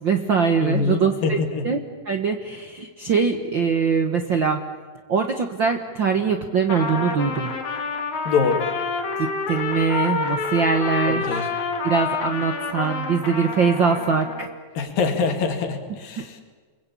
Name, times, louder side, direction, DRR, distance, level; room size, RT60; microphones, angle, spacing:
voice 1, 0.0-1.4 1.6-1.8 2.0-4.6 5.1-7.5 9.2-11.5 11.8-14.5 16.2-16.3, right 5 dB, 60° right, 5 dB, 1.2 m, -22 dB
voice 2, 0.6-1.6 8.3-8.6 11.1-11.4 14.8-16.4, left 5 dB, 80° left, 4 dB, 4.2 m, -24 dB
Trumpet, 6.6-14.5, left 5 dB, 60° left, 3.9 m, -28 dB
29.5 x 21.5 x 8.5 m, 1.5 s
omnidirectional pair, 4.0 m